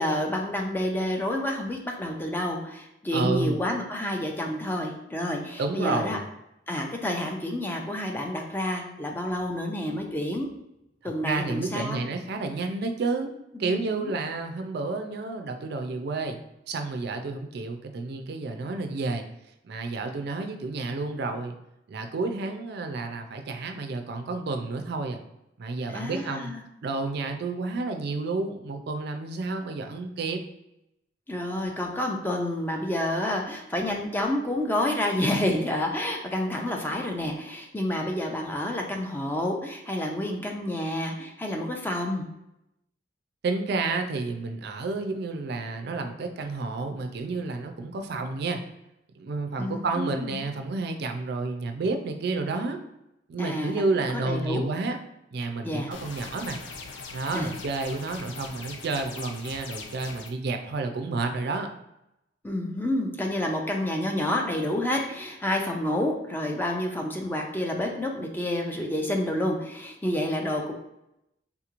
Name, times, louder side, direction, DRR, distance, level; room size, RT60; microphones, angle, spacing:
voice 1, 0.0-6.2 6.7-10.5 11.0-12.1 13.5-14.1 25.9-26.6 31.3-42.3 49.6-50.4 53.4-53.8 54.1-54.7 55.6-55.9 57.3-57.5 62.4-70.7, left 1 dB, 10° left, 2 dB, 0.4 m, -29 dB
voice 2, 3.1-3.6 5.6-6.3 11.0-13.3 13.6-16.4 16.7-19.2 19.6-21.6 21.9-25.2 25.6-26.5 26.8-30.4 43.4-48.6 49.2-52.8 53.3-55.0 55.3-56.6 57.1-61.7, right 3 dB, 60° right, 5 dB, 0.4 m, -30 dB
sound 1, 55.9-60.3, left 4 dB, 80° left, 0.5 m, -41 dB
3.6 x 2.9 x 2.4 m, 0.86 s
head